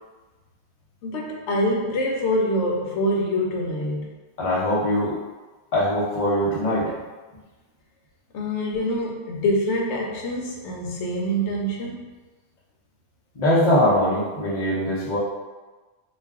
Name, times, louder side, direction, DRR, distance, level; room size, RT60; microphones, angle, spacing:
voice 1, 1.0-4.2 8.3-12.1, equal, 90° left, -1 dB, 0.9 m, -25 dB
voice 2, 4.4-5.2 5.7-6.9 13.3-15.2, left 1 dB, 45° left, -8 dB, 0.7 m, -21 dB
2.4 x 2.3 x 3.4 m, 1.2 s
omnidirectional pair, 1.1 m